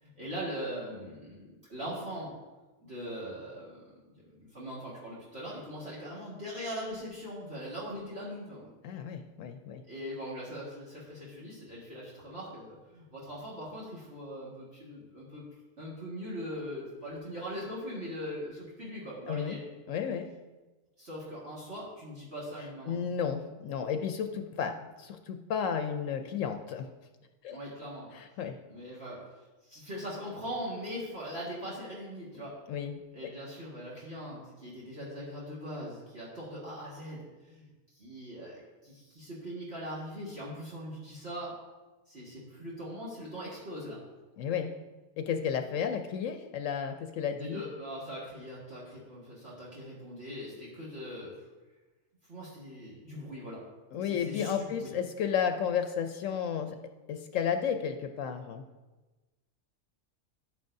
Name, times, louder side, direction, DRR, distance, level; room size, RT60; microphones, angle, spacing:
voice 1, 0.0-2.3 2.8-3.8 4.4-8.7 9.9-15.4 15.8-19.6 21.0-22.9 27.5-28.1 28.7-29.2 29.6-32.5 33.1-37.7 37.9-41.5 42.1-44.0 47.4-51.3 52.3-53.6 54.0-54.9, equal, 55° right, -7 dB, 2.1 m, -41 dB
voice 2, 8.8-9.8 19.3-19.6 19.9-20.3 22.9-26.9 27.4-27.6 28.1-28.6 32.3-33.3 44.4-44.8 45.2-47.6 53.9-56.8 57.1-58.6, left 7 dB, 80° left, 6 dB, 0.9 m, -33 dB
10.5 x 9.1 x 2.6 m, 1.2 s
omnidirectional pair, 1.3 m